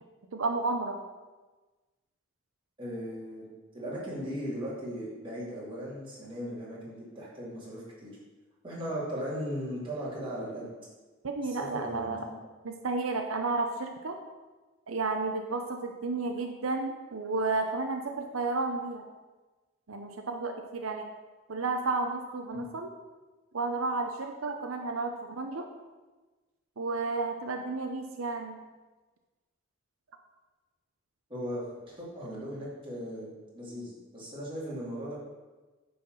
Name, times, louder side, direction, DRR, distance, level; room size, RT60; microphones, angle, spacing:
voice 1, 0.3-1.0 11.2-12.2 12.6-14.2 14.9-19.0 19.9-21.0 21.5-22.9 23.5-25.7 26.8-28.6, right 3 dB, 85° right, 4 dB, 0.7 m, -32 dB
voice 2, 2.8-3.5 3.7-8.1 8.6-10.7 11.4-12.3 22.5-22.7 31.3-35.2, equal, 25° right, -7 dB, 2.8 m, -37 dB
9.5 x 4.3 x 6.5 m, 1.2 s
head